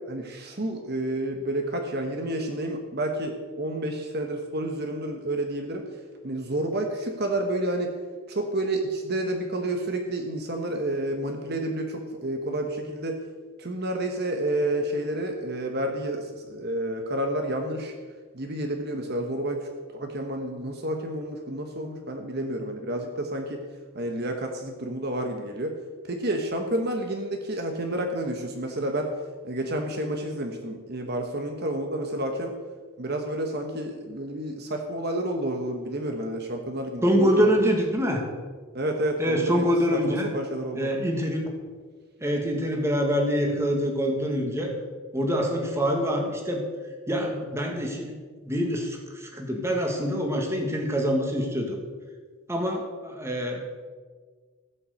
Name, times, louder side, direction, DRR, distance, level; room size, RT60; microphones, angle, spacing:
voice 1, 0.1-5.8 6.2-7.9 8.3-13.2 13.6-17.9 18.3-23.6 23.9-25.8 26.1-29.1 29.4-32.5 33.0-37.5 38.7-40.9, right 1 dB, 50° right, 4 dB, 1.2 m, -30 dB
voice 2, 37.0-38.2 39.2-40.3 40.8-41.5 42.2-44.7 45.1-46.6 47.1-48.1 48.4-51.8 52.5-53.6, equal, 10° right, 1 dB, 1.8 m, -25 dB
15.5 x 6.0 x 7.8 m, 1.5 s
head